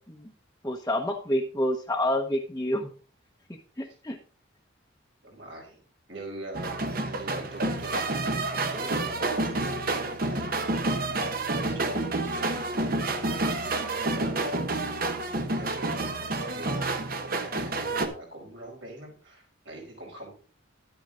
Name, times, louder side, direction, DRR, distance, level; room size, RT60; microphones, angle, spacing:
voice 1, 0.6-2.9 3.8-4.2, left 1 dB, 15° left, 0 dB, 0.9 m, -28 dB
voice 2, 5.2-5.8 6.1-10.7 11.2-13.0 13.3-14.9 15.6-20.3, right 2 dB, 70° right, 0 dB, 5.0 m, -44 dB
sound 1, 6.5-18.1, right 2 dB, 45° right, 1.1 m, -29 dB
11.0 x 8.7 x 3.8 m, 0.38 s
head